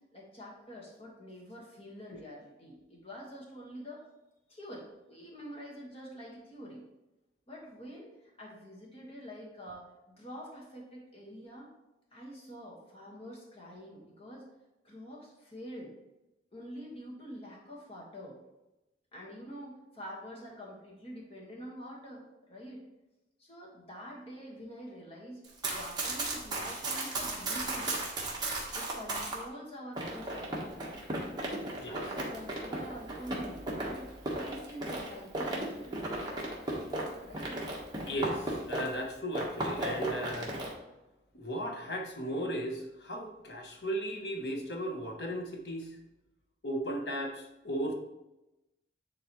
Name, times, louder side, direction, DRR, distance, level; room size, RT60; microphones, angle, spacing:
voice 1, 0.0-4.0 4.5-6.8 7.5-11.7 12.1-14.5 14.8-15.9 16.5-18.4 19.1-22.9 23.4-25.4 25.7-27.9 28.7-30.7 31.8-36.0 37.2-37.6, equal, 35° left, -3 dB, 1.7 m, -46 dB
Run, 25.4-29.4 30.0-39.0 39.3-40.7, right 2 dB, 25° right, 1.4 m, -36 dB
voice 2, 38.0-40.6 41.3-45.9 46.6-47.9, equal, 65° left, 2 dB, 1.1 m, -36 dB
9.7 x 3.9 x 3.2 m, 0.97 s
head